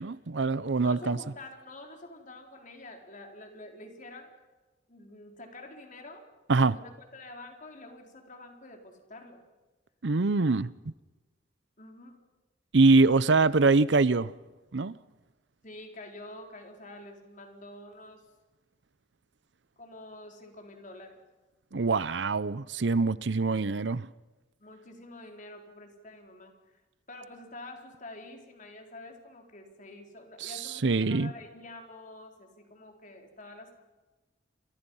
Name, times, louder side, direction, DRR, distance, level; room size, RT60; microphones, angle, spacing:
voice 1, 0.0-1.2 6.5-6.8 10.0-10.9 12.7-14.3 14.7-14.9 21.7-24.1 30.4-30.5 30.8-31.3, right 3 dB, 70° right, 0.7 m, -24 dB
voice 2, 0.7-4.3 4.9-6.3 6.7-9.4 11.8-12.2 15.6-18.3 19.8-21.2 24.6-26.5 27.1-33.7, left 2 dB, 45° left, 4.3 m, -47 dB
29.0 x 24.5 x 5.6 m
head